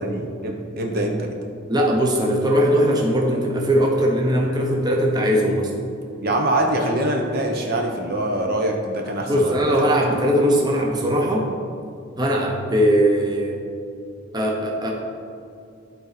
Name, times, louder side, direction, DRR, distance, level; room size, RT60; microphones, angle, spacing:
voice 1, 0.0-1.3 6.2-9.7, right 1 dB, 50° right, 1 dB, 0.8 m, -24 dB
voice 2, 1.7-5.7 9.3-11.5 12.2-13.6 14.3-14.9, equal, 20° right, -1 dB, 0.8 m, -20 dB
12.0 x 4.1 x 4.2 m, 2.5 s
head